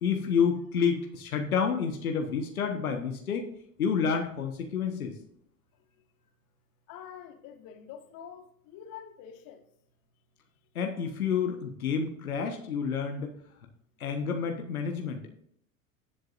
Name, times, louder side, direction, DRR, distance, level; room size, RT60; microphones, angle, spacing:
voice 1, 0.0-3.5 3.8-5.2 10.7-13.3 14.0-15.2, left 6 dB, 80° left, 1.5 m, -29 dB
voice 2, 6.9-9.6, left 8 dB, 50° left, 1.7 m, -46 dB
17.5 x 7.9 x 2.6 m
figure-of-eight pair, 75°, 43 cm